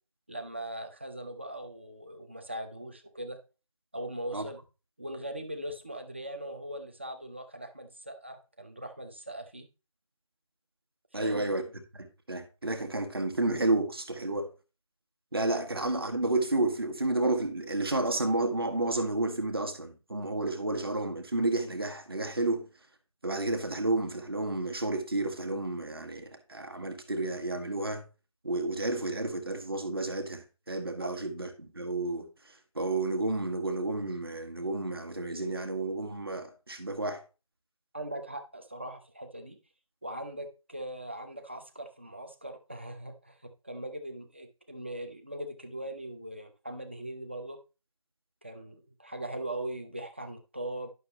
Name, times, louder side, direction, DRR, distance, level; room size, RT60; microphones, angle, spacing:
voice 1, 0.3-3.4 3.9-4.6 5.0-9.7 11.1-11.5 31.0-31.1 37.9-39.6 40.0-47.6 48.4-50.9, right 1 dB, 20° right, 0.7 m, -40 dB
voice 2, 11.1-14.5 15.3-22.7 23.2-28.1 28.4-37.2, right 2 dB, 40° right, 1.5 m, -31 dB
11.0 x 6.2 x 3.0 m
figure-of-eight pair, 170°, 18 cm